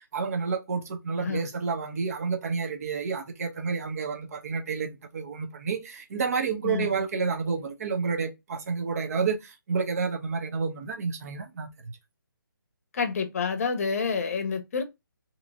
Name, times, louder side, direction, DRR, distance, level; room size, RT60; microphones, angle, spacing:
voice 1, 0.0-12.0, right 5 dB, 45° right, 0.7 m, -30 dB
voice 2, 6.6-7.0 12.9-14.8, left 5 dB, 45° left, 0.7 m, -28 dB
2.8 x 2.7 x 2.5 m
hypercardioid pair, 155°, 11 cm